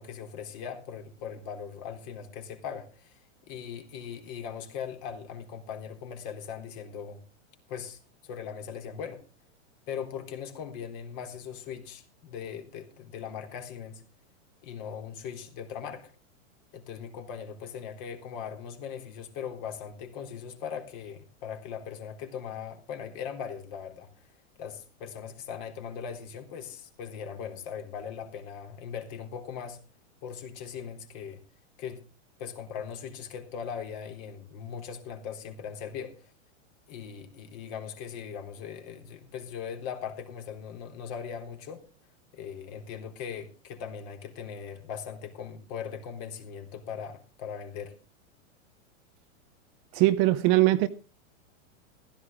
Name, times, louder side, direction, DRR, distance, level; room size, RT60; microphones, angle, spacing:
voice 1, 0.0-7.2 7.7-9.2 9.9-14.0 14.6-16.1 16.7-24.1 24.6-29.8 30.2-31.4 31.8-32.0 32.4-36.2 36.9-41.8 42.3-48.0, left 7 dB, 45° left, 3.7 m, -39 dB
voice 2, 49.9-50.9, right 16 dB, 35° right, 0.8 m, -21 dB
15.5 x 14.0 x 3.6 m
supercardioid pair, 145°, 38 cm